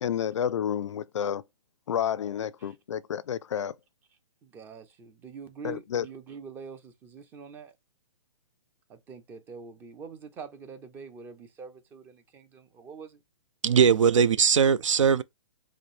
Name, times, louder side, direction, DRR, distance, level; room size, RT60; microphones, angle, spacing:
voice 1, 0.0-1.4 1.9-3.7 5.6-6.1, left 9 dB, 70° left, 0.4 m, -30 dB
voice 2, 4.4-7.7 8.9-13.2, right 5 dB, 15° right, 0.4 m, -45 dB
voice 3, 13.6-15.2, right 7 dB, 85° right, 0.4 m, -20 dB
4.9 x 2.0 x 3.3 m
hypercardioid pair, 140°, 16 cm